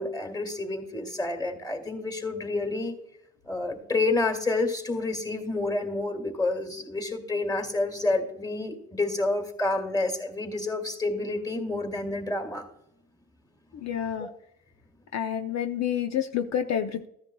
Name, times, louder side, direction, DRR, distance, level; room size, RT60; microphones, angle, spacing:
voice 1, 0.0-2.9 3.5-12.7 14.2-14.3, left 2 dB, 15° left, 6 dB, 2.2 m, -29 dB
voice 2, 13.7-14.3 15.1-17.1, left 9 dB, 60° left, 7 dB, 0.7 m, -29 dB
14.5 x 10.0 x 2.3 m, 0.78 s
cardioid pair, 90°, 30 cm